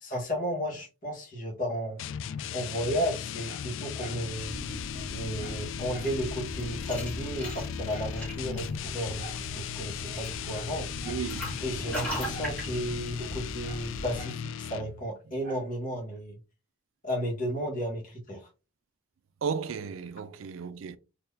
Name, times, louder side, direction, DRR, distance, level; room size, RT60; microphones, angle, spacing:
voice 1, 0.0-2.0 2.5-4.6 5.1-10.9 11.6-16.4 17.0-18.5, equal, 40° left, 1.5 m, -33 dB
sound 1, 2.0-15.1, left 8 dB, 75° left, 0.3 m, -37 dB
Dog, 3.0-4.3 4.6-4.7 4.9-6.2 6.5-6.6 6.9-8.2 9.2-9.5 10.0-11.3 12.3-12.6 12.9-14.4 15.4-15.7 16.2-16.3, right 1 dB, 40° right, 1.7 m, -49 dB
sound 2, 4.2-14.2, equal, 10° left, 1.7 m, -40 dB
voice 2, 11.0-11.4 19.4-21.0, right 6 dB, 85° right, 0.4 m, -34 dB
3.9 x 2.8 x 2.7 m
head